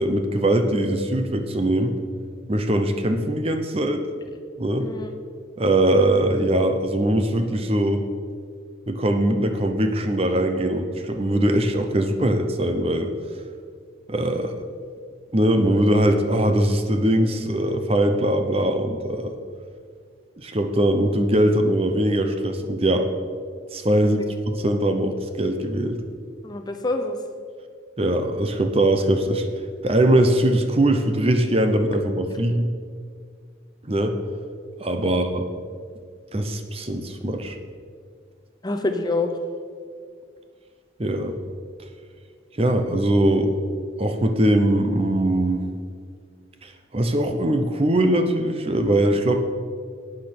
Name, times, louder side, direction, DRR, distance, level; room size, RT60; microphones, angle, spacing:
voice 1, 0.0-2.0 2.5-4.0 4.6-4.9 5.6-8.1 8.9-13.1 14.1-14.6 15.3-19.3 20.4-23.1 23.7-26.0 28.0-29.5 29.8-32.7 33.9-34.1 34.8-35.5 36.3-37.6 41.0-41.3 42.5-43.6 44.0-45.6 46.6-49.4, right 1 dB, 30° right, 6 dB, 0.8 m, -21 dB
voice 2, 4.8-5.1 23.9-24.3 26.4-27.2 35.0-35.2 38.6-39.4, left 2 dB, 20° left, 5 dB, 0.7 m, -27 dB
11.5 x 8.8 x 6.0 m, 2.1 s
head